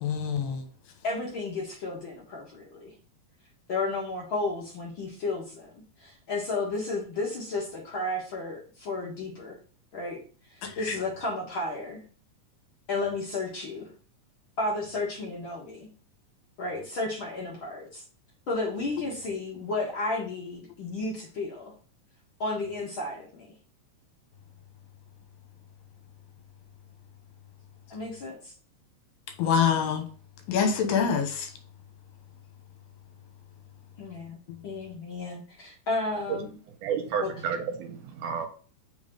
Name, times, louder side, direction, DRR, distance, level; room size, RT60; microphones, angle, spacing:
voice 1, 0.0-0.6 10.6-10.7 29.4-30.0 30.5-31.5, left 7 dB, 80° left, 2.8 m, -25 dB
voice 2, 1.0-2.9 3.7-9.6 9.9-10.2 10.5-12.0 12.9-13.9 14.6-15.9 16.6-18.0 18.5-21.7 22.4-23.5 27.9-28.5 34.0-34.4 34.6-36.5 37.2-37.3, left 2 dB, 50° left, 1.6 m, -33 dB
voice 3, 36.8-38.5, right 7 dB, 80° right, 2.0 m, -31 dB
6.2 x 3.6 x 5.0 m
omnidirectional pair, 4.0 m